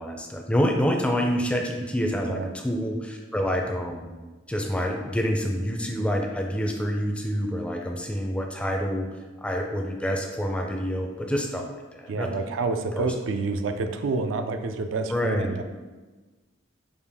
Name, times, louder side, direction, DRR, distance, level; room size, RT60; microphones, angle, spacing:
voice 1, 0.0-4.1 4.5-9.1 9.4-12.5 13.0-13.1 15.1-15.6, equal, 5° left, 2 dB, 0.4 m, -27 dB
voice 2, 12.1-15.6, right 3 dB, 75° right, 7 dB, 0.4 m, -28 dB
5.1 x 2.4 x 3.4 m, 1.3 s
head